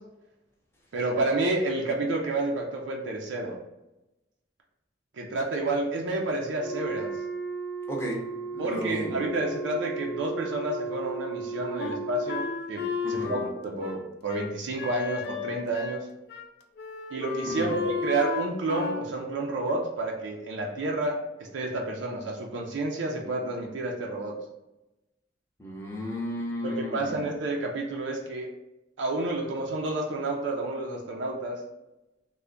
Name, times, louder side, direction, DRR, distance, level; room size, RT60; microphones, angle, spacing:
voice 1, 0.9-3.6 5.1-7.1 8.6-16.1 17.1-24.4 26.6-28.5 29.0-31.6, right 2 dB, 75° right, -1 dB, 0.5 m, -30 dB
Wind instrument woodwind instrument, 6.5-12.6, right 4 dB, 85° left, 0.7 m, -35 dB
voice 2, 7.9-8.2 8.5-9.2 13.0-13.3 17.4-17.8 25.6-27.3, equal, 15° left, -2 dB, 0.6 m, -33 dB
Wind instrument woodwind instrument 2, 11.8-16.0 16.3-16.5 16.8-19.1, left 5 dB, 55° left, 0.3 m, -33 dB
3.3 x 2.1 x 3.7 m, 0.95 s
head